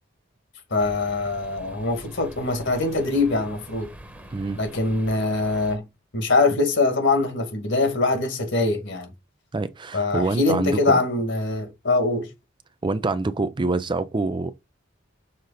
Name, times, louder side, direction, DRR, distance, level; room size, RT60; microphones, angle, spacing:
voice 1, 0.7-3.9 4.6-5.8 6.1-9.1 9.9-12.3, left 3 dB, 65° left, 2.1 m, -23 dB
sound 1, 0.8-5.8, equal, 10° right, 1.2 m, -43 dB
voice 2, 4.3-4.6 9.5-11.0 12.8-14.5, right 3 dB, 25° right, 0.4 m, -25 dB
6.6 x 3.9 x 4.1 m
head